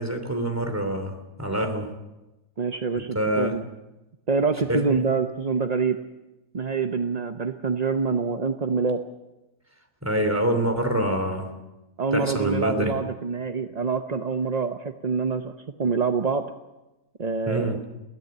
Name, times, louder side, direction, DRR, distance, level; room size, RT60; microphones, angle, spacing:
voice 1, 0.0-1.9 3.1-3.6 4.7-5.0 10.0-11.5 12.1-12.9 17.5-17.8, right 1 dB, 10° right, 5 dB, 3.0 m, -26 dB
voice 2, 2.6-3.6 4.3-6.0 6.5-9.0 12.0-16.5 17.2-17.8, right 5 dB, 40° right, 7 dB, 0.6 m, -26 dB
22.5 x 16.0 x 7.9 m, 1.0 s
omnidirectional pair, 1.7 m